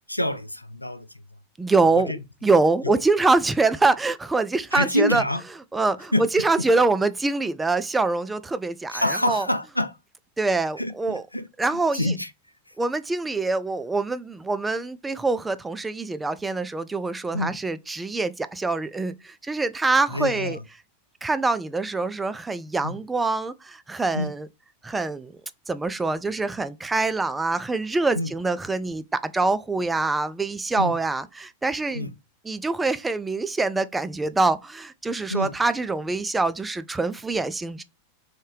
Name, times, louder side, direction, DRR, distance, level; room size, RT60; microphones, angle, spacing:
voice 1, 0.1-1.1 2.1-2.2 2.8-3.0 4.7-5.4 6.1-6.3 8.9-10.0 10.8-11.5 11.9-12.3 17.3-17.6 20.1-20.6 22.8-23.0 24.1-24.3 28.1-28.3 30.8-31.0 31.9-32.1 35.3-35.5, left 1 dB, 85° left, 0.3 m, -26 dB
voice 2, 1.6-2.1 2.4-5.2 5.7-9.5 10.4-11.2 11.6-12.1 12.8-20.6 21.2-24.5 24.8-25.3 25.7-32.1 32.4-37.8, right 3 dB, 10° right, 0.3 m, -24 dB
3.5 x 2.7 x 3.1 m
figure-of-eight pair, 90°, 0 cm